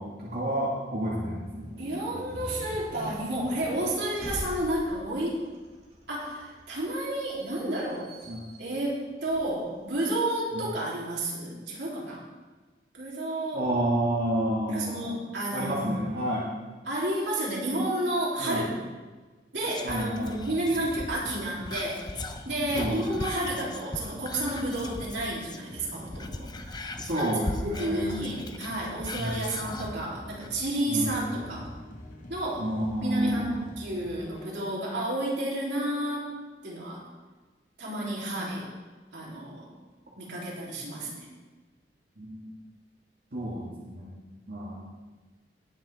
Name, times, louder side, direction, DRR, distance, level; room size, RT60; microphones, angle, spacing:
voice 1, 0.0-1.7 8.3-8.5 10.5-10.6 13.5-15.0 15.5-16.5 18.4-18.7 19.8-20.6 22.7-23.2 27.0-28.2 29.1-29.4 30.9-31.3 32.6-33.6 42.2-42.5 43.3-44.2 44.5-44.8, right 1 dB, 60° right, -7 dB, 1.9 m, -30 dB
sound 1, 1.3-10.0, equal, 35° right, 3.1 m, -43 dB
voice 2, 1.8-5.4 6.1-8.1 8.6-12.2 12.9-13.7 14.7-16.0 16.9-18.7 19.5-22.0 22.5-31.7 32.3-32.7 33.0-36.3 36.6-37.0 37.8-38.7 39.1-39.7 40.2-41.3, right 1 dB, 80° right, -5 dB, 3.6 m, -31 dB
Whispering, 19.7-25.7 26.0-30.0 30.4-30.5, left 2 dB, 25° left, 0.7 m, -39 dB
sound 2, 20.4-34.5, left 1 dB, 50° left, 1.6 m, -46 dB
19.0 x 6.9 x 3.6 m, 1.3 s
head